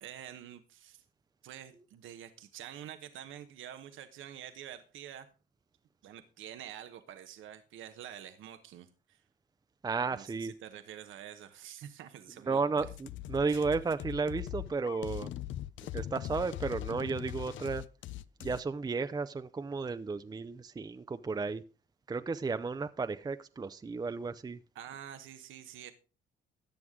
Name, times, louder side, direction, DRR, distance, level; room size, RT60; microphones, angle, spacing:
voice 1, 0.0-1.0 1.4-5.3 6.0-9.2 10.1-12.9 13.4-13.6 24.7-25.9, right 10 dB, 80° right, 1.0 m, -47 dB
voice 2, 9.8-10.5 12.5-15.3 15.9-17.8 18.4-21.6 22.1-24.6, right 4 dB, 20° right, 0.5 m, -33 dB
sound 1, 12.8-18.6, left 14 dB, 75° left, 0.6 m, -41 dB
14.0 x 9.4 x 3.7 m
cardioid pair, 90°, 20 cm